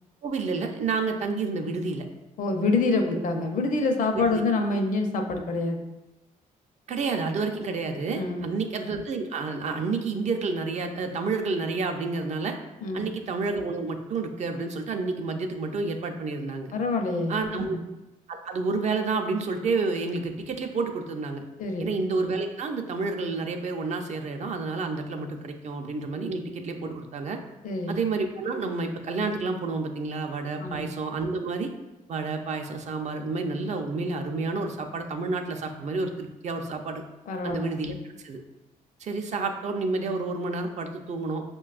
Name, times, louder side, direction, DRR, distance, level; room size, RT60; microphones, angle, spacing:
voice 1, 0.2-2.1 4.1-4.5 6.9-12.6 12.9-16.7 17.3-17.8 18.3-21.4 21.8-27.4 27.9-31.7 32.1-37.0 37.4-37.9 38.2-38.4 39.0-41.4, right 3 dB, 50° right, 4 dB, 0.5 m, -29 dB
voice 2, 2.4-5.8 8.1-8.5 12.8-13.1 16.7-17.8 21.6-21.9 27.6-28.0 30.6-30.9 37.3-37.7, left 3 dB, 60° left, 4 dB, 0.5 m, -26 dB
5.1 x 2.2 x 2.4 m, 0.99 s
cardioid pair, 80°, 15 cm